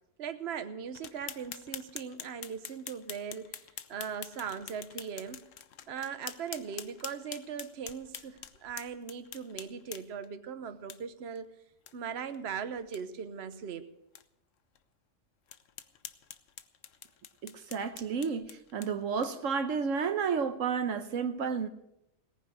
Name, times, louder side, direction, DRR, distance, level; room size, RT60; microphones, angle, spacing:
voice 1, 0.2-3.6 3.9-5.4 5.9-11.5 11.9-13.9, right 7 dB, 55° right, 1.2 m, -39 dB
sound 1, 0.9-10.3 10.9-11.0 11.4-11.5 11.9-12.0 12.3-12.4 12.8-13.0 13.5-13.6 14.2-14.3 14.8-14.9 15.5-19.5, left 9 dB, 75° left, 1.1 m, -46 dB
voice 2, 17.4-21.7, right 6 dB, 80° right, 1.3 m, -31 dB
18.0 x 10.0 x 6.4 m
omnidirectional pair, 1.3 m